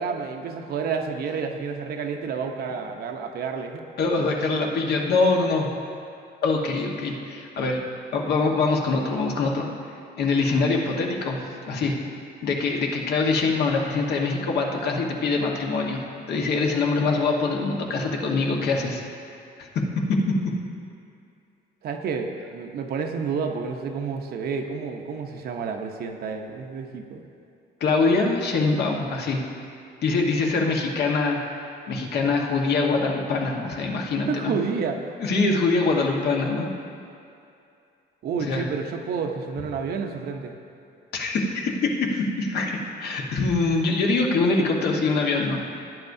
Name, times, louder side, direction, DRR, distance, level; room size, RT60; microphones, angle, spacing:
voice 1, 0.0-3.9 21.8-27.2 34.3-35.0 38.2-40.5, right 5 dB, 60° right, 4 dB, 0.8 m, -30 dB
voice 2, 4.0-5.7 6.4-7.8 8.1-9.7 10.2-11.9 12.4-16.0 16.3-19.0 20.1-20.5 27.8-29.4 30.0-31.4 31.9-34.5 35.2-36.7 38.4-38.7 41.1-41.7 42.1-45.6, left 3 dB, 65° left, 0 dB, 1.3 m, -24 dB
16.5 x 9.5 x 2.7 m, 2.5 s
cardioid pair, 165°, 18 cm